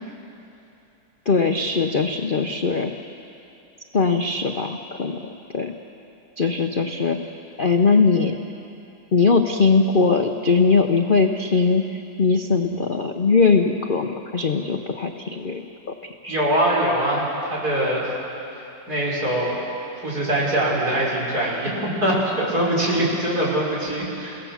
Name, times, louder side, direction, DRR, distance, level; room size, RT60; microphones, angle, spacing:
voice 1, 1.3-2.9 3.9-5.2 5.5-5.7 6.4-7.2 7.6-8.4 9.1-15.9 16.2-16.4, left 4 dB, 45° left, 4 dB, 0.7 m, -20 dB
voice 2, 16.3-18.1 18.9-19.6 20.0-24.4, right 1 dB, 55° right, -4 dB, 5.7 m, -23 dB
29.5 x 17.5 x 7.3 m, 2.8 s
omnidirectional pair, 2.0 m